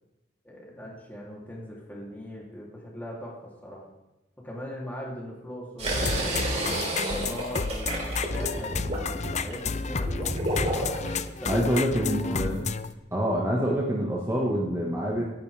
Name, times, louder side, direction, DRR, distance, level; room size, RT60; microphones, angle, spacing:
voice 1, 0.4-3.9 4.4-6.5 7.0-11.0 11.2-11.9 12.2-12.5, equal, 10° left, -4 dB, 3.4 m, -40 dB
sound 1, 5.8-11.2, right 1 dB, 35° right, 3.7 m, -31 dB
sound 2, 5.9-12.9, left 4 dB, 40° left, 0.5 m, -31 dB
voice 2, 11.4-12.7 13.1-15.2, equal, 15° right, -4 dB, 1.9 m, -26 dB
26.5 x 11.0 x 3.6 m, 1.0 s
head